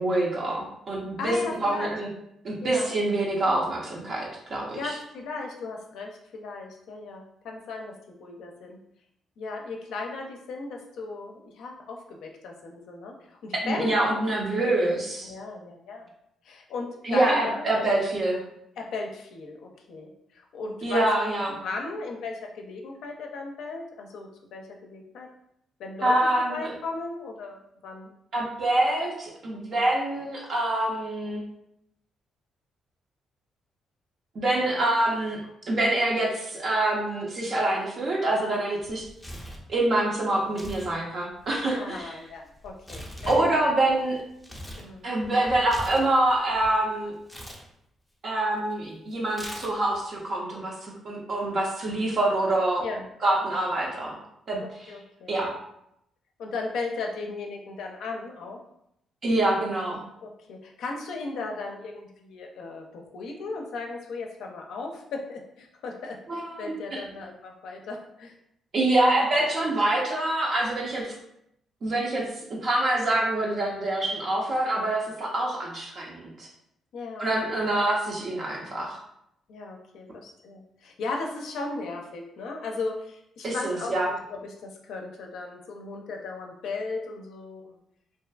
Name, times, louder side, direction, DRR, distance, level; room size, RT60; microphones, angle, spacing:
voice 1, 0.0-2.1 2.4-5.0 13.6-15.3 17.0-18.4 20.8-21.5 26.0-26.7 28.3-31.4 34.3-35.4 35.6-39.1 39.7-42.1 43.3-44.2 45.0-47.1 48.2-52.8 53.2-54.2 54.5-54.9 55.3-55.5 59.2-60.0 66.3-67.0 68.7-71.1 71.8-72.2 72.5-76.5 77.2-79.0 83.4-84.1, right 1 dB, 55° right, -2 dB, 0.5 m, -26 dB
voice 2, 1.2-1.9 2.6-2.9 4.7-8.8 9.4-13.2 13.4-14.2 14.5-14.8 15.2-16.1 16.4-17.6 18.8-21.1 21.3-25.3 25.8-26.1 26.5-28.1 41.7-43.7 44.8-45.1 52.8-53.1 54.6-55.4 56.4-58.6 60.2-68.3 76.9-77.6 79.5-87.8, left 3 dB, 75° left, 1 dB, 0.4 m, -36 dB
Tearing, 38.8-39.7 40.4-40.9 41.2-44.9 45.2-46.7 47.2-47.6 49.3-50.0, equal, 5° left, 0.5 m, -41 dB
2.4 x 2.4 x 2.3 m, 0.77 s
cardioid pair, 90°, 0 cm